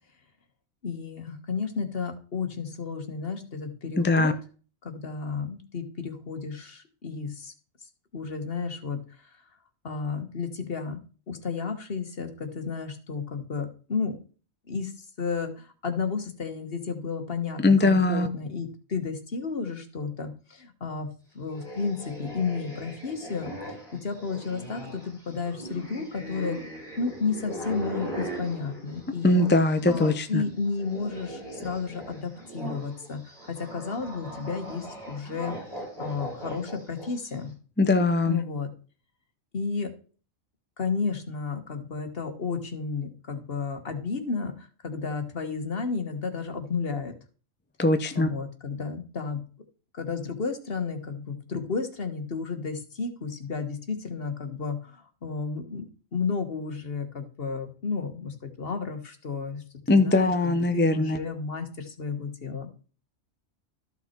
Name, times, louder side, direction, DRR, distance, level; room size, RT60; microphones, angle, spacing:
voice 1, 0.8-4.3 4.8-7.5 8.1-9.0 9.8-11.0 11.3-14.2 14.7-14.9 15.2-21.1 21.3-23.5 23.9-26.6 27.0-29.4 29.9-35.5 36.0-37.5 38.3-38.7 39.5-39.9 40.8-47.1 48.1-49.4 49.9-62.7, left 5 dB, 45° left, 6 dB, 1.5 m, -32 dB
voice 2, 4.0-4.3 17.6-18.3 29.2-30.4 37.8-38.4 47.8-48.3 59.9-61.2, left 2 dB, 15° left, 8 dB, 0.4 m, -21 dB
sound 1, 21.5-30.2 30.5-37.3, right 1 dB, 25° right, 5.0 m, -39 dB
13.5 x 5.8 x 4.5 m, 0.39 s
omnidirectional pair, 1.4 m